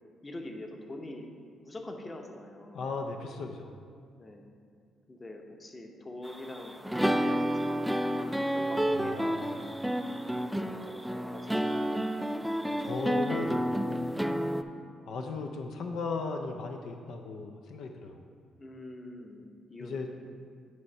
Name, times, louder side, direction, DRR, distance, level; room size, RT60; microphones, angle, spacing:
voice 1, 0.2-1.3 1.6-2.8 4.2-4.5 5.1-7.9 8.5-9.5 10.2-11.8 18.6-20.1, left 1 dB, 25° left, 3 dB, 0.8 m, -44 dB
voice 2, 2.7-3.7 8.9-9.5 12.8-13.6 15.1-18.2 19.8-20.1, left 4 dB, 75° left, 3 dB, 0.5 m, -36 dB
sound 1, 6.3-14.6, equal, 5° right, 0.3 m, -30 dB
9.4 x 3.2 x 5.5 m, 2.2 s
cardioid pair, 90°, 0 cm